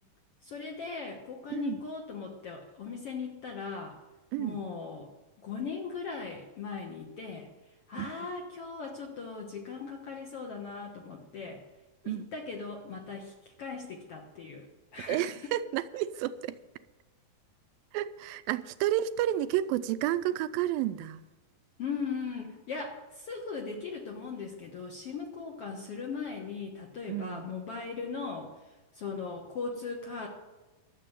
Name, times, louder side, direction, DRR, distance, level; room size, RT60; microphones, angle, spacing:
voice 1, 0.4-4.0 4.4-5.1 5.4-7.5 7.9-11.6 12.0-14.7 14.9-15.5 21.8-30.3, left 5 dB, 55° left, 1 dB, 1.8 m, -39 dB
voice 2, 4.3-4.6 8.0-8.3 12.1-12.3 15.1-16.6 17.9-21.2 27.1-27.5, right 12 dB, 85° right, 14 dB, 2.4 m, -31 dB
12.5 x 7.5 x 9.0 m, 1.2 s
omnidirectional pair, 4.1 m